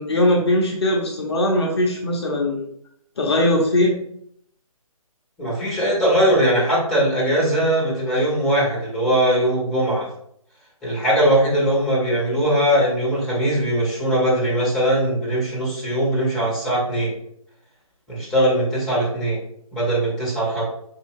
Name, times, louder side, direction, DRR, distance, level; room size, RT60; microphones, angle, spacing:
voice 1, 0.0-2.7 3.2-3.9, left 1 dB, 45° left, 0 dB, 0.9 m, -20 dB
voice 2, 5.4-10.1 10.8-17.1 18.1-19.4 19.7-20.6, right 1 dB, 5° left, -6 dB, 1.2 m, -20 dB
5.5 x 2.7 x 3.1 m, 0.70 s
figure-of-eight pair, 145°, 19 cm